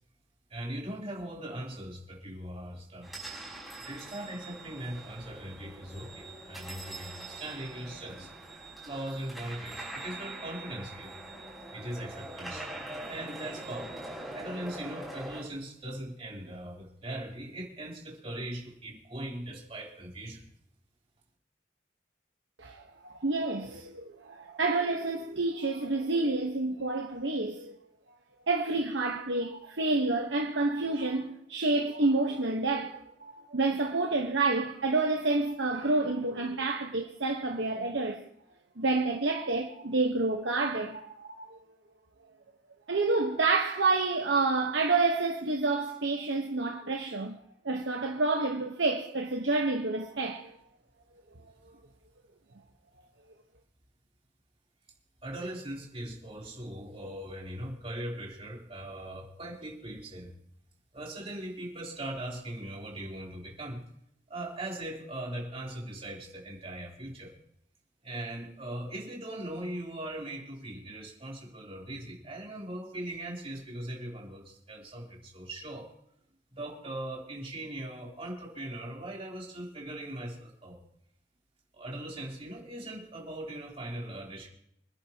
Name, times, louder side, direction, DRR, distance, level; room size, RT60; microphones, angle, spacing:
voice 1, 0.5-3.1 3.8-8.3 8.8-11.1 11.7-12.7 13.1-14.0 14.3-20.4 55.2-60.3 60.9-63.9 64.3-67.3 68.0-75.9 76.5-80.8 81.7-84.5, right 1 dB, 35° right, 3.5 m, -40 dB
sound 1, 3.0-15.4, right 2 dB, ahead, 6.3 m, -43 dB
voice 2, 22.6-27.7 28.5-38.2 38.8-41.6 42.9-47.4 47.6-50.6, right 3 dB, 80° right, 1.2 m, -29 dB
26.5 x 10.5 x 3.0 m
head